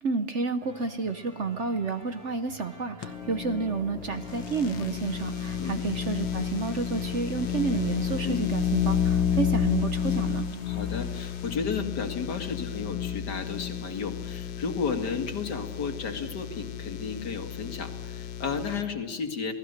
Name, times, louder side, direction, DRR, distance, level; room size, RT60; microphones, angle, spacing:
voice 1, 0.0-10.5, right 4 dB, 50° right, 10 dB, 0.9 m, -30 dB
sound 1, 0.6-8.2, right 1 dB, 70° right, 8.9 m, -47 dB
sound 2, 3.0-18.8, left 8 dB, 70° left, 1.8 m, -31 dB
sound 3, 4.3-11.6, left 2 dB, 15° left, 3.4 m, -51 dB
voice 2, 8.2-8.5 10.6-19.5, left 5 dB, 55° left, 6 dB, 2.6 m, -33 dB
28.5 x 18.5 x 6.7 m, 1.3 s
omnidirectional pair, 2.2 m